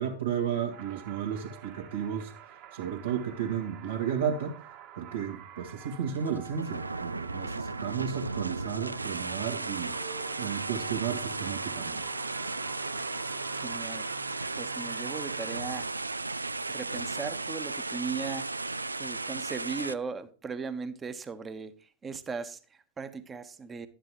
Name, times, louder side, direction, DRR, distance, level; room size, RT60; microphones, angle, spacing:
voice 1, 0.0-2.3 2.7-4.5 5.0-9.9 10.4-12.0, right 8 dB, 65° right, 2.0 m, -33 dB
sound 1, 0.7-15.9, right 10 dB, 45° right, 2.1 m, -48 dB
sound 2, 6.1-19.9, right 3 dB, 80° right, 0.4 m, -35 dB
voice 2, 13.5-14.1 14.6-15.9 16.7-18.5 19.0-23.9, right 5 dB, 20° right, 1.2 m, -38 dB
12.5 x 10.0 x 3.1 m
figure-of-eight pair, 90°, 0 cm